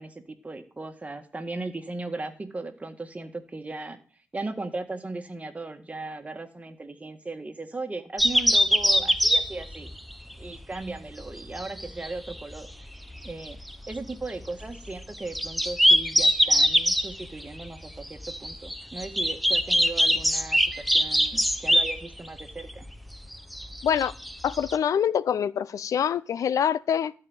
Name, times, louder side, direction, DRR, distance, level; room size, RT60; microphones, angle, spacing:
voice 1, 0.0-4.0 4.3-9.9 10.4-12.7 13.2-13.6 13.9-22.8, right 2 dB, 25° right, 1.8 m, -37 dB
sound 1, 8.2-24.8, equal, ahead, 1.0 m, -24 dB
voice 2, 24.4-27.1, left 8 dB, 75° left, 0.6 m, -25 dB
13.0 x 5.0 x 8.9 m
cardioid pair, 75°, 6 cm